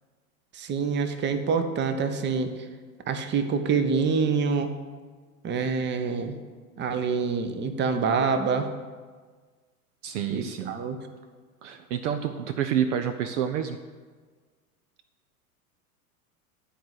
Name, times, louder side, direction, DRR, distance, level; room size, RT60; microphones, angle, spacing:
voice 1, 0.5-2.5 3.1-4.7 5.4-6.4 6.8-8.7 10.3-11.0, right 5 dB, 25° right, 8 dB, 0.9 m, -26 dB
voice 2, 10.0-10.8 11.6-13.8, right 9 dB, 55° right, 7 dB, 0.7 m, -28 dB
10.0 x 4.8 x 7.8 m, 1.5 s
figure-of-eight pair, 90°, 45 cm